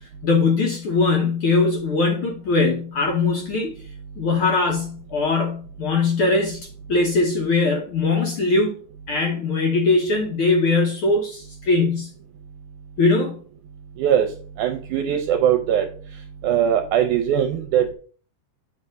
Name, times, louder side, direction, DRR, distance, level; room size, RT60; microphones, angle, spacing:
voice 1, 0.2-3.8 4.2-8.7 9.1-12.1 13.0-13.4, left 3 dB, 70° left, 1 dB, 1.3 m, -21 dB
voice 2, 14.0-14.3 14.6-15.9 16.4-17.9, right 9 dB, 75° right, 5 dB, 1.9 m, -20 dB
7.9 x 3.2 x 5.2 m, 0.42 s
omnidirectional pair, 3.7 m